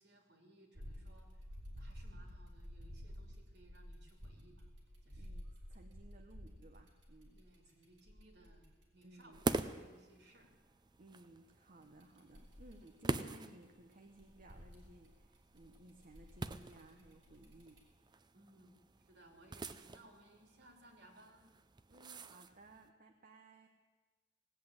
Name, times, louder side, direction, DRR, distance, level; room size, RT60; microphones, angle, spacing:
voice 1, 0.0-1.5 1.8-4.7 5.0-5.3 7.4-10.5 11.8-11.9 18.3-18.8 19.0-21.5, right 1 dB, 65° right, 3 dB, 2.8 m, -63 dB
sound 1, 0.7-9.6 11.8-13.6 13.9-17.8, equal, 85° right, 3.4 m, -52 dB
voice 2, 5.2-7.4 9.0-9.4 11.0-17.8 21.9-23.7, right 1 dB, 45° right, 4 dB, 0.9 m, -59 dB
sound 2, 9.3-22.9, right 2 dB, 25° right, 0.5 m, -45 dB
18.0 x 8.5 x 8.8 m, 1.3 s
head